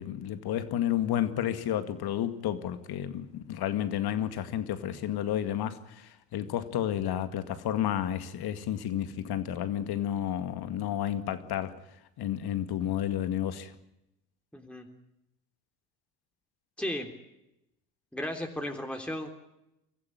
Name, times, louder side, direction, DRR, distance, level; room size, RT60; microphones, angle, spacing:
voice 1, 0.0-11.8 12.2-13.7, left 11 dB, 50° left, 2.2 m, -31 dB
voice 2, 14.5-14.9 16.8-17.1 18.1-19.3, left 1 dB, ahead, 3.4 m, -35 dB
25.0 x 14.5 x 9.9 m
hypercardioid pair, 65°, 47 cm